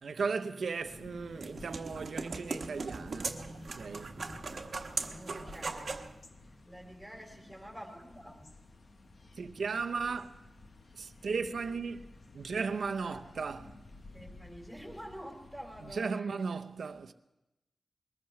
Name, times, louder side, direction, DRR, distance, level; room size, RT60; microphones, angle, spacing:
voice 1, 0.0-4.3 9.4-10.4 11.0-12.0 12.3-13.8 15.8-17.1, right 5 dB, 70° right, 0.7 m, -36 dB
sound 1, 0.8-16.0, left 3 dB, 45° left, 1.0 m, -54 dB
sound 2, 0.9-6.1, right 4 dB, 55° right, 1.1 m, -39 dB
voice 2, 5.1-8.5 13.0-13.2 14.1-16.3, equal, 5° left, 4.1 m, -48 dB
22.5 x 20.0 x 3.2 m
wide cardioid pair, 130°, 0 cm